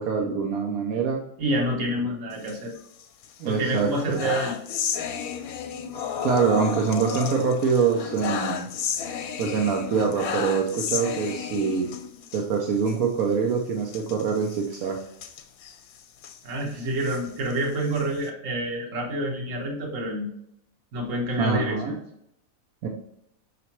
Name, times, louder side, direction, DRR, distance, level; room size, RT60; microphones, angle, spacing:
voice 1, 0.0-1.2 3.4-4.2 6.2-8.7 9.4-11.9 12.3-15.0 21.4-22.0 22.8-22.9, right 5 dB, 90° right, 1 dB, 1.2 m, -24 dB
voice 2, 1.4-2.7 3.4-4.5 16.4-20.3 20.9-22.0, right 1 dB, 65° right, 0 dB, 1.3 m, -28 dB
sound 1, 2.3-3.3 3.6-12.4 12.8-12.9 13.2-13.3 13.9-16.4 16.9-18.3, left 8 dB, 85° left, 1.1 m, -33 dB
5.8 x 3.0 x 2.9 m, 0.73 s
omnidirectional pair, 1.5 m